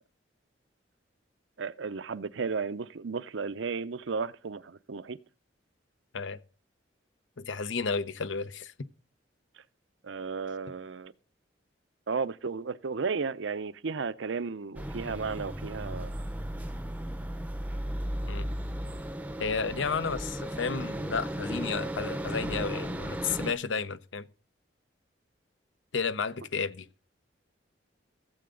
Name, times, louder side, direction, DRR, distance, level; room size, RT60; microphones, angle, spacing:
voice 1, 1.6-5.2 10.0-11.1 12.1-16.1, right 5 dB, 80° right, 0.6 m, -34 dB
voice 2, 7.4-8.7 18.3-18.5 19.4-24.3 25.9-26.9, left 5 dB, 80° left, 0.7 m, -32 dB
sound 1, 14.8-23.5, equal, 10° right, 0.6 m, -35 dB
15.0 x 7.8 x 3.8 m
head